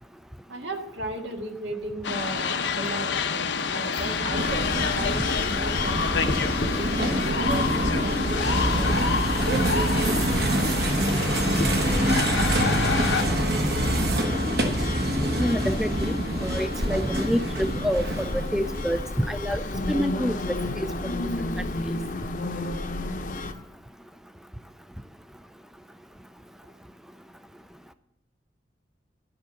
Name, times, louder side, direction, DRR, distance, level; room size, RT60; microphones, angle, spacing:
voice 1, 0.5-9.0 9.4-10.1, right 2 dB, 80° right, 4 dB, 1.7 m, -35 dB
sound 1, 2.0-13.2, left 5 dB, 80° left, 0.8 m, -28 dB
sound 2, 3.9-19.0, right 1 dB, 60° right, 1.2 m, -26 dB
sound 3, 4.4-23.5, left 2 dB, 45° left, 0.8 m, -32 dB
voice 2, 15.4-19.6 19.9-20.4 20.8-20.9, equal, ahead, 11 dB, 0.3 m, -27 dB
12.0 x 5.7 x 6.9 m, 0.87 s
head